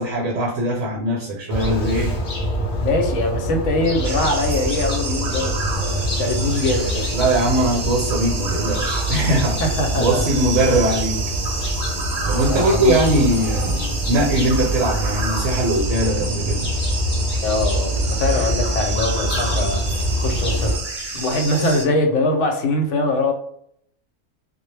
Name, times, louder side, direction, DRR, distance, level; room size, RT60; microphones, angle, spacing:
voice 1, 0.0-2.2 7.1-9.6 9.9-11.2 12.2-16.7, right 1 dB, 75° right, -2 dB, 0.9 m, -21 dB
sound 1, 1.5-20.8, equal, 50° left, 0.6 m, -25 dB
voice 2, 2.8-7.1 9.6-10.3 12.5-13.1 17.4-19.8 20.2-23.3, left 2 dB, 70° left, 3 dB, 0.9 m, -22 dB
sound 2, 4.0-21.8, right 3 dB, 45° right, 0.5 m, -30 dB
2.2 x 2.0 x 3.1 m, 0.69 s
omnidirectional pair, 1.4 m